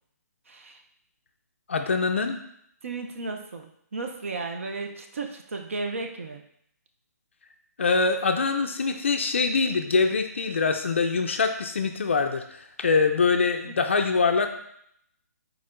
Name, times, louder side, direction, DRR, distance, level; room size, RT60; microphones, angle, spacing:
voice 1, 0.5-0.8 2.8-6.4 13.6-13.7, right 3 dB, 50° right, 4 dB, 0.5 m, -34 dB
voice 2, 1.7-2.4 7.8-14.5, left 4 dB, 45° left, 6 dB, 0.4 m, -24 dB
4.5 x 4.2 x 2.5 m, 0.71 s
hypercardioid pair, 180°, 9 cm